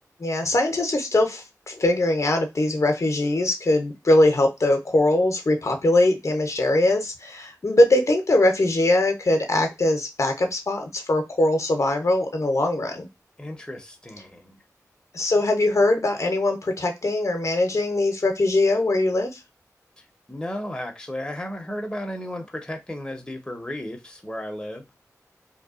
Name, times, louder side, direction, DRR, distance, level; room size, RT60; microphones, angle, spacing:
voice 1, 0.2-13.1 15.1-19.4, left 2 dB, 55° left, 0.6 m, -21 dB
voice 2, 13.4-14.6 20.0-24.8, left 1 dB, 15° left, 0.7 m, -34 dB
2.7 x 2.2 x 2.4 m
cardioid pair, 45°, 6 cm